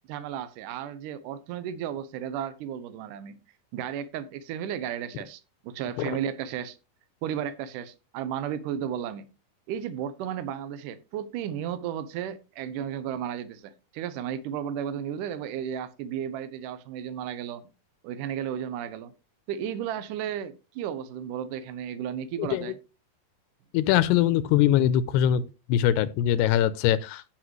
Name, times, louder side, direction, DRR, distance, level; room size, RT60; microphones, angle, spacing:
voice 1, 0.1-3.4 3.7-6.8 7.2-9.3 9.7-17.6 18.0-19.1 19.5-22.8, right 9 dB, 80° right, 1.9 m, -34 dB
voice 2, 23.7-25.4 25.7-27.3, left 11 dB, 85° left, 2.6 m, -22 dB
16.0 x 6.5 x 3.2 m
omnidirectional pair, 4.8 m